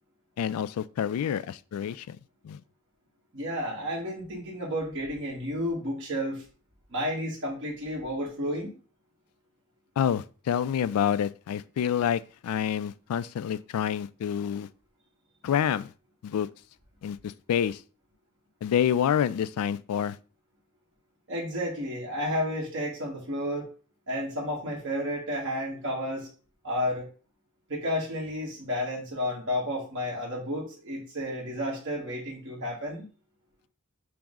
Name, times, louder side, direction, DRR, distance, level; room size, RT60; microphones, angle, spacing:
voice 1, 0.4-2.2 2.4-2.6 10.0-14.7 15.4-15.9 16.2-16.5 17.0-17.8 18.6-20.2, left 9 dB, 90° left, 0.3 m, -28 dB
voice 2, 3.3-6.4 6.9-8.7 21.3-23.7 24.1-26.3 26.6-27.0 27.7-33.0, equal, 60° right, 1.2 m, -31 dB
5.9 x 2.0 x 3.6 m
head